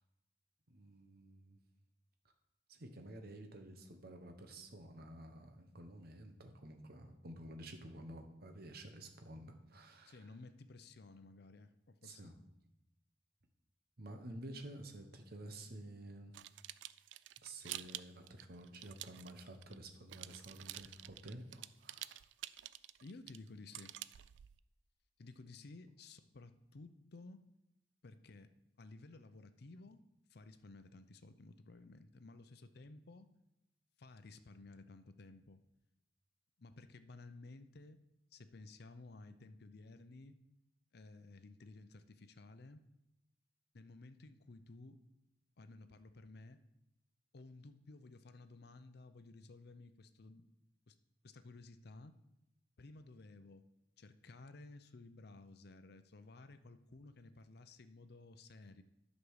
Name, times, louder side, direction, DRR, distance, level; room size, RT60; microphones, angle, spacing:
voice 1, 0.7-1.6 2.7-10.3 12.0-12.3 14.0-16.3 17.4-22.2, right 1 dB, 55° right, 5 dB, 1.1 m, -51 dB
voice 2, 10.1-12.3 23.0-24.0 25.2-27.4 28.0-28.5 28.8-30.0 30.3-33.3 34.0-35.6 36.6-38.0 38.3-40.4 40.9-42.8 43.7-45.0 45.6-46.6 47.3-50.5 50.9-51.0 51.2-52.2 52.8-53.6 54.0-58.8, left 3 dB, 60° left, 11 dB, 0.6 m, -55 dB
sound 1, 16.3-19.8 20.1-24.6, right 14 dB, 80° right, 0.3 m, -49 dB
9.9 x 5.3 x 6.3 m, 0.89 s
head